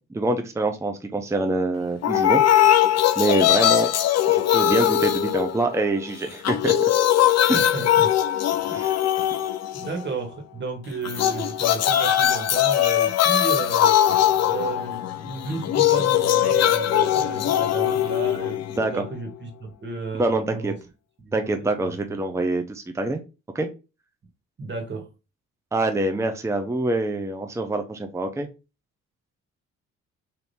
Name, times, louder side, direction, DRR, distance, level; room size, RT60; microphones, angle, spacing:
voice 1, 0.1-2.4 3.2-3.9 4.3-6.9 7.5-7.6 8.7-9.0 18.8-19.0 20.2-20.7 21.3-23.2 23.5-23.7 25.7-28.5, right 2 dB, 10° right, 6 dB, 0.6 m, -25 dB
sound 1, 2.0-6.0 6.3-10.1 11.0-19.0, left 11 dB, 60° left, 0.5 m, -21 dB
voice 2, 7.5-8.1 8.6-9.2 9.7-13.9 14.5-20.7 21.2-22.2 24.6-25.1, right 4 dB, 35° right, 3 dB, 1.6 m, -33 dB
3.5 x 2.7 x 4.2 m, 0.29 s
cardioid pair, 90°, 30 cm